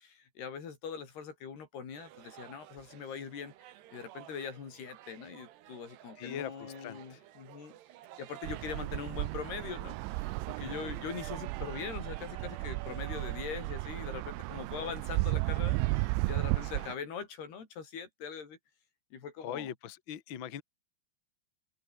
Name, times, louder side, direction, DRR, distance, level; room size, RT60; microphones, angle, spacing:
voice 1, 0.0-7.7 8.2-18.6 19.1-19.7, left 6 dB, 60° left, 6.4 m, -42 dB
sound 1, 1.9-16.3, right 13 dB, 70° right, 3.3 m, -52 dB
voice 2, 6.2-7.2 10.6-11.0 14.7-14.9 19.4-20.6, left 9 dB, 80° left, 1.1 m, -41 dB
sound 2, 8.4-16.9, right 23 dB, 85° right, 3.0 m, -34 dB
open air
omnidirectional pair, 5.3 m